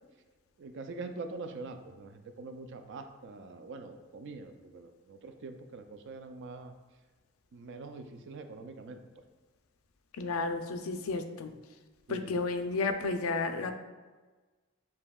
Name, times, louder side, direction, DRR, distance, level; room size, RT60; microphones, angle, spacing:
voice 1, 0.6-6.7 7.5-9.0 12.1-12.3, right 3 dB, 60° right, 7 dB, 0.4 m, -44 dB
voice 2, 10.2-11.5 12.1-13.7, left 3 dB, 80° left, 7 dB, 0.4 m, -32 dB
7.3 x 2.7 x 2.3 m, 1.3 s
head